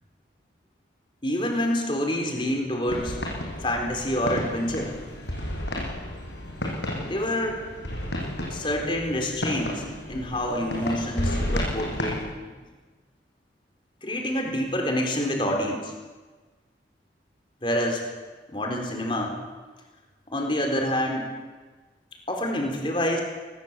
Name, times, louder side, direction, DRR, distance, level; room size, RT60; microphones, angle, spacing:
voice 1, 1.2-3.2 3.6-4.9 7.0-7.6 8.5-9.8 10.1-12.3 14.0-15.9 17.6-18.0 18.5-19.4 20.3-21.3 22.3-23.2, left 1 dB, 30° left, 1 dB, 4.3 m, -27 dB
sound 1, 2.9-12.2, left 1 dB, 85° left, 7.0 m, -32 dB
23.0 x 21.0 x 7.6 m, 1.3 s
head